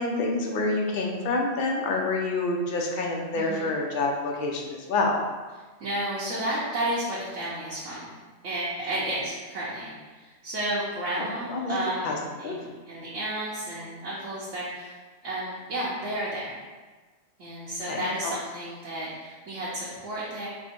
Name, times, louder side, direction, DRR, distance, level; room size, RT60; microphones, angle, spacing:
voice 1, 0.0-5.2 11.2-11.8 12.0-12.6 17.8-18.3, left 2 dB, 55° left, 0 dB, 0.6 m, -28 dB
voice 2, 3.3-3.7 5.8-8.1 8.4-14.9 15.2-16.6 17.4-20.5, right 1 dB, 70° right, -9 dB, 1.2 m, -32 dB
4.4 x 2.2 x 4.2 m, 1.3 s
omnidirectional pair, 1.3 m